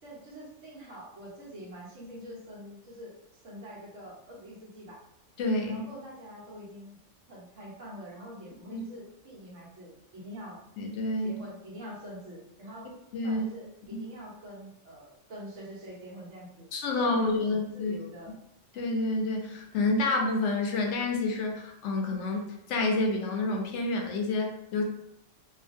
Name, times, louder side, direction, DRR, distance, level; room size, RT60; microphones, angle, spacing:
voice 1, 0.0-3.1 3.4-5.0 5.7-7.0 7.3-10.6 11.2-12.9 13.2-18.3, equal, 80° right, -4 dB, 1.3 m, -45 dB
voice 2, 5.4-5.9 8.7-8.8 10.8-11.4 13.1-13.4 13.9-14.1 16.7-18.0 18.7-24.8, left 2 dB, 75° left, 2 dB, 0.9 m, -29 dB
2.7 x 2.4 x 2.5 m, 0.80 s
omnidirectional pair, 1.3 m